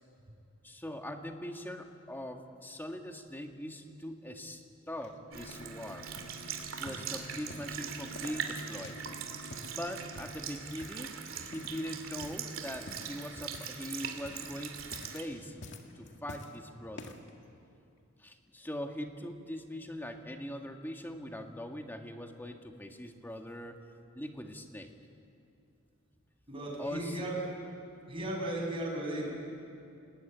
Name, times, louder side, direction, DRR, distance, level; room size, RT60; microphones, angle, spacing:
voice 1, 0.6-4.6 4.9-6.1 6.8-9.0 9.7-11.1 11.4-15.5 15.9-17.2 18.2-23.8 24.2-24.9 26.8-27.3, equal, 10° left, 4 dB, 1.7 m, -41 dB
sound 1, 5.0-5.8 6.2-6.4 6.8-7.8 8.2-9.1 9.4-9.8 10.2-10.5 10.8-11.2 11.5-11.9 12.1-12.5 12.9-13.9 14.1-14.5 14.8-15.3 15.6-16.6 16.9-17.3 18.0-18.1, left 2 dB, 60° left, 2.1 m, -49 dB
sound 2, 5.3-10.3, equal, 40° left, 2.3 m, -50 dB
Sink (filling or washing) / Liquid, 5.3-15.2, right 7 dB, 80° right, 2.6 m, -41 dB
voice 2, 26.5-27.5 28.1-29.3, right 1 dB, 25° right, -3 dB, 7.6 m, -35 dB
29.0 x 19.5 x 9.3 m, 2.6 s
head